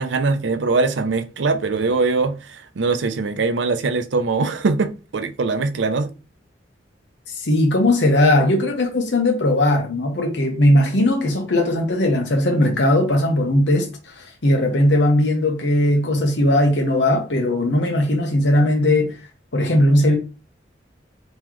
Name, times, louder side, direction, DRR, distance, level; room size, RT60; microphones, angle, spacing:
voice 1, 0.0-6.1, right 3 dB, 85° right, 0.6 m, -22 dB
voice 2, 7.3-19.2 19.5-20.1, left 1 dB, 75° left, 0.9 m, -18 dB
3.7 x 3.1 x 3.0 m
head